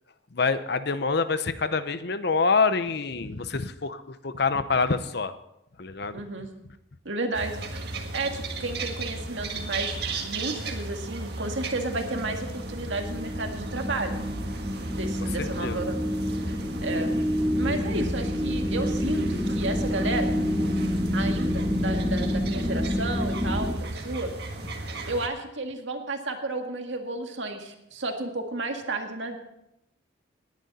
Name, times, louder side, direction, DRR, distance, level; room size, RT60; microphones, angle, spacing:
voice 1, 0.3-5.3 5.8-6.2 15.4-15.9, left 4 dB, 55° left, 12 dB, 0.8 m, -26 dB
voice 2, 6.1-6.5 7.1-7.6 8.1-14.2 14.7-16.0 16.8-17.1 17.5-20.4 21.1-24.3 25.1-29.4, right 2 dB, 70° right, 4 dB, 1.9 m, -32 dB
sound 1, 7.3-25.3, right 2 dB, 55° right, 1.8 m, -36 dB
sound 2, 10.9-23.7, equal, 15° right, 1.9 m, -28 dB
18.5 x 10.5 x 4.2 m, 0.84 s
head